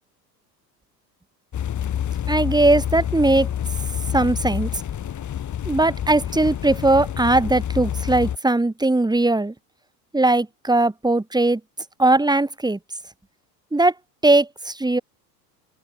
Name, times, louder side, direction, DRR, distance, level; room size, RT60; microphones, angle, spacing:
sound 1, 1.5-8.4, left 10 dB, 35° left, 4.5 m, -28 dB
voice 1, 2.3-3.5 4.1-4.7 5.6-9.5 10.1-11.6 12.0-12.8 13.7-13.9 14.2-15.0, right 2 dB, 10° right, 4.4 m, -19 dB
open air
hypercardioid pair, 80°, 49 cm